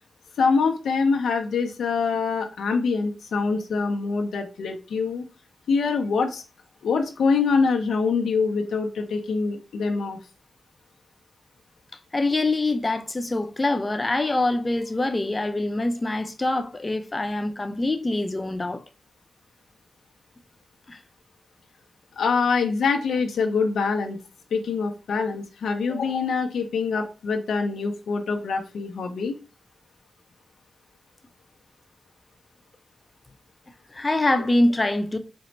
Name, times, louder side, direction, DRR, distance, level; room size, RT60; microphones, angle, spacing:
voice 1, 0.4-5.2 5.7-6.4 6.8-10.2 22.2-24.2 24.5-29.4, left 4 dB, 85° left, 0.5 m, -24 dB
voice 2, 12.1-18.8 20.9-21.0 33.9-35.2, left 2 dB, 30° left, 0.6 m, -24 dB
4.3 x 2.0 x 3.9 m
cardioid pair, 60°, 0 cm